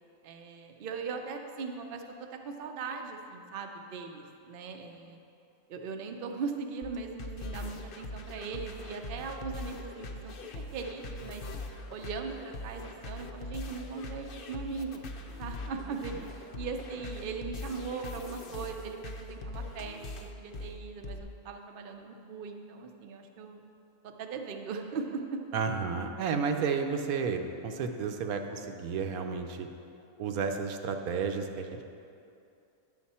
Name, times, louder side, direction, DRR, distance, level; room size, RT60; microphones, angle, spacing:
voice 1, 0.2-5.2 5.7-11.4 11.9-15.1 15.4-23.6 24.0-25.4, right 4 dB, 55° right, 4 dB, 0.6 m, -39 dB
sound 1, 6.8-21.2, left 2 dB, 55° left, 0.6 m, -42 dB
voice 2, 25.5-29.7 30.2-31.8, right 5 dB, 75° right, 5 dB, 1.1 m, -32 dB
10.0 x 6.6 x 4.2 m, 2.6 s
omnidirectional pair, 1.6 m